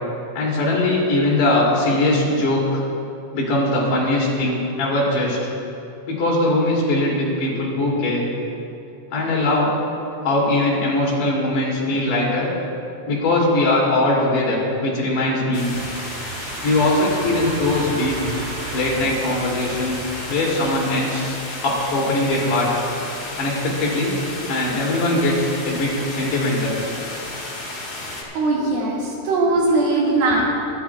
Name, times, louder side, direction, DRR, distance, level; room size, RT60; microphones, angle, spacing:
voice 1, 0.3-2.8 3.3-5.5 6.1-8.2 9.1-9.7 10.2-12.5 13.0-15.7 16.6-18.3 18.7-21.4 21.6-22.7 23.4-24.1 24.5-26.8, left 2 dB, 85° left, -5 dB, 4.9 m, -21 dB
sound 1, 15.5-28.2, left 2 dB, 40° left, 1.4 m, -33 dB
sound 2, 15.7-20.8, right 6 dB, 85° right, 2.7 m, -35 dB
voice 2, 28.4-30.4, right 2 dB, 70° right, -4 dB, 3.6 m, -20 dB
25.0 x 11.5 x 2.4 m, 2.6 s
omnidirectional pair, 4.6 m